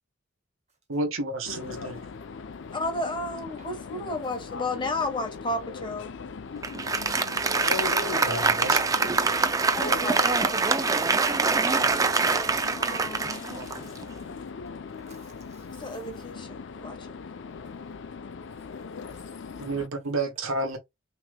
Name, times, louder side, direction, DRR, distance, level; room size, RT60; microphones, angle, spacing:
voice 1, 0.9-2.0 8.2-8.8 13.5-13.7 19.6-20.8, right 2 dB, 80° right, 1.1 m, -31 dB
sound 1, 1.4-19.9, left 5 dB, 60° left, 0.5 m, -39 dB
voice 2, 2.7-6.1 9.7-10.6 12.3-13.4 15.8-17.2, left 2 dB, 25° left, 1.2 m, -33 dB
Applause, 6.6-14.2, right 4 dB, 15° right, 0.4 m, -24 dB
voice 3, 13.5-14.3 15.0-16.0 18.6-18.7 19.1-19.6, right 4 dB, 35° right, 1.4 m, -58 dB
6.2 x 3.0 x 2.2 m
head